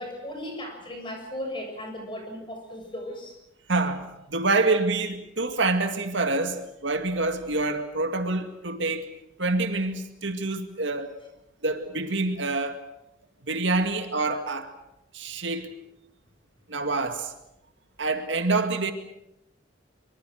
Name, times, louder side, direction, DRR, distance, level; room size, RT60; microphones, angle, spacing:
voice 1, 0.0-3.3, left 1 dB, 25° left, 7.0 m, -36 dB
voice 2, 3.7-9.1 9.4-11.1 11.6-12.8 13.4-14.7 15.1-15.7 16.7-17.3 18.0-18.9, right 3 dB, 65° right, 2.1 m, -26 dB
24.5 x 24.0 x 6.5 m
head